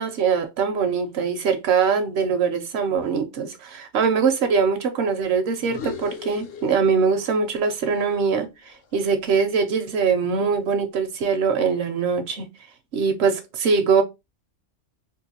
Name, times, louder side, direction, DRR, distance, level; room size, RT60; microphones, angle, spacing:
voice 1, 0.0-12.5 12.9-14.0, right 5 dB, 65° right, 0.8 m, -22 dB
sound 1, 5.6-7.3 7.6-9.9, left 6 dB, 60° left, 0.8 m, -39 dB
3.6 x 2.5 x 2.8 m
omnidirectional pair, 1.3 m